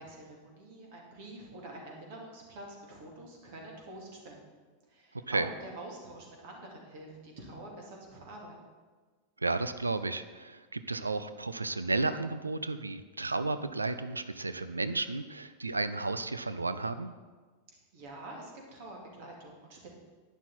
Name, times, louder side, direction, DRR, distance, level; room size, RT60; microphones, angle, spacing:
voice 1, 0.0-4.6 4.9-8.5 17.9-19.9, right 1 dB, 50° right, 0 dB, 2.7 m, -46 dB
voice 2, 9.4-17.1, right 3 dB, 80° right, 12 dB, 0.5 m, -33 dB
11.0 x 9.4 x 4.3 m, 1.4 s
figure-of-eight pair, 90°, 0 cm